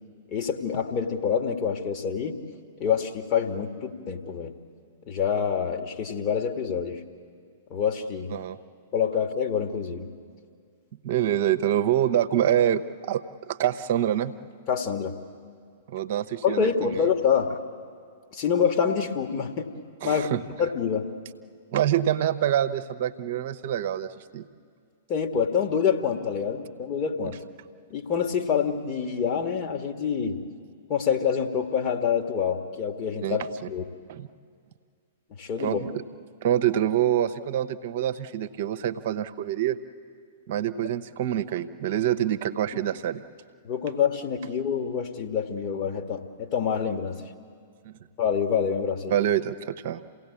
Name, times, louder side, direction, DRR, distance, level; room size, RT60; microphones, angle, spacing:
voice 1, 0.3-2.4 2.8-4.5 5.1-7.0 7.7-8.3 8.9-10.1 14.7-15.2 16.4-17.6 18.3-19.7 20.0-20.3 20.6-21.1 25.1-27.4 27.9-30.4 30.9-33.8 35.4-35.8 43.6-47.2 48.2-49.2, left 7 dB, 30° left, 4 dB, 1.8 m, -26 dB
voice 2, 11.0-14.3 15.9-17.0 20.0-20.4 21.7-24.5 33.2-33.5 34.1-34.3 35.6-36.0 36.4-39.8 40.5-43.2 47.8-47.9 49.1-50.0, right 11 dB, 45° right, 10 dB, 0.9 m, -26 dB
28.5 x 17.0 x 8.4 m, 2.1 s
figure-of-eight pair, 105°, 0 cm